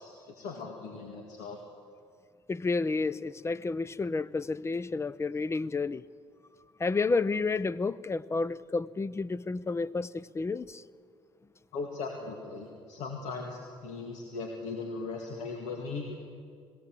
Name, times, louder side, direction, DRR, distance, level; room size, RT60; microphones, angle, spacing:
voice 1, 0.0-1.6 11.7-16.2, left 4 dB, 80° left, 2 dB, 2.1 m, -38 dB
voice 2, 2.5-6.0 6.8-10.8, left 3 dB, 25° left, 19 dB, 0.6 m, -30 dB
21.5 x 17.0 x 7.7 m, 2.2 s
supercardioid pair, 85°, 12 cm